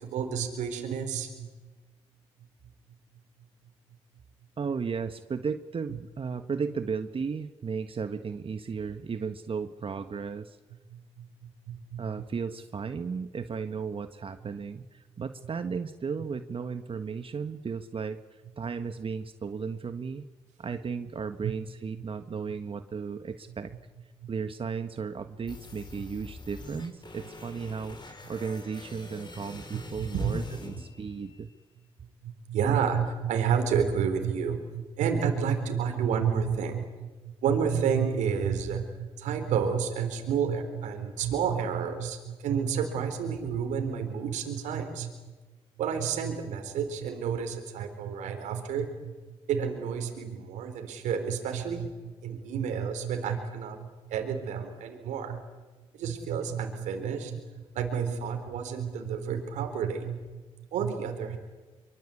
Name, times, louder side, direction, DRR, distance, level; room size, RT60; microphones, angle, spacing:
voice 1, 0.0-1.5 11.7-12.0 21.4-21.5 29.7-30.3 32.2-45.1 45.8-49.1 49.5-55.4 55.9-60.2 60.7-61.4, right 7 dB, 85° right, 5 dB, 4.1 m, -30 dB
voice 2, 4.6-10.6 12.0-20.2 20.6-23.7 24.3-28.0 28.3-31.5, right 5 dB, 50° right, 9 dB, 1.5 m, -35 dB
sound 1, 25.5-31.5, left 2 dB, 40° left, 5.4 m, -45 dB
25.0 x 24.5 x 8.5 m, 1.2 s
supercardioid pair, 50°, 12 cm